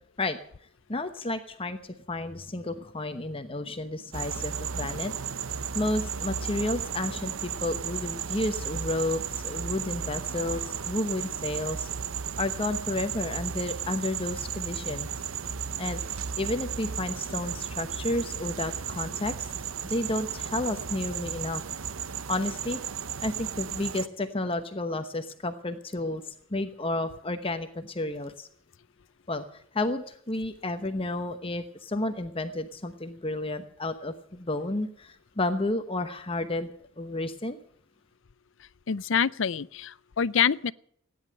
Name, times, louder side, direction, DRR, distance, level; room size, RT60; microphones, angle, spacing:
voice 1, 0.9-5.1 5.7-11.9 12.4-15.1 15.8-19.5 19.8-21.6 22.3-22.8 23.2-28.5 29.3-36.7 37.0-37.6, left 2 dB, 25° left, 1.0 m, -31 dB
sound 1, 4.1-24.1, right 7 dB, 90° right, 0.8 m, -34 dB
voice 2, 38.9-40.7, left 7 dB, 65° left, 0.6 m, -26 dB
17.0 x 10.5 x 7.7 m
head